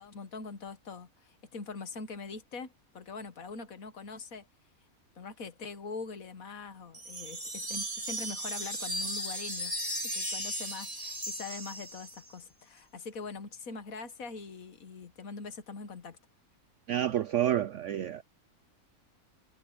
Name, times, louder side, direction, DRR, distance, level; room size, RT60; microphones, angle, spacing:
voice 1, 0.0-4.5 5.2-9.7 10.1-16.2, left 4 dB, 70° left, 1.8 m, -43 dB
sound 1, 6.9-12.3, right 1 dB, 25° right, 2.2 m, -36 dB
voice 2, 16.9-18.2, right 11 dB, 65° right, 0.9 m, -29 dB
omnidirectional pair, 1.5 m